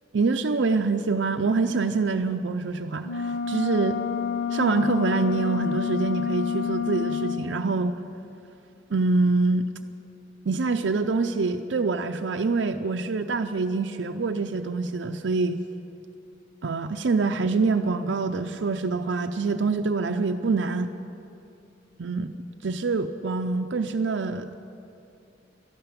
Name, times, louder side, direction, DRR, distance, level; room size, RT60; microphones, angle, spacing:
voice 1, 0.1-4.0 4.5-8.0 8.9-9.7 10.5-15.6 16.6-20.9 22.0-22.3 22.6-24.5, right 4 dB, 70° right, 6 dB, 0.5 m, -25 dB
sound 1, 3.0-7.5, left 7 dB, 80° left, 0.9 m, -28 dB
12.5 x 12.5 x 8.8 m, 2.7 s
head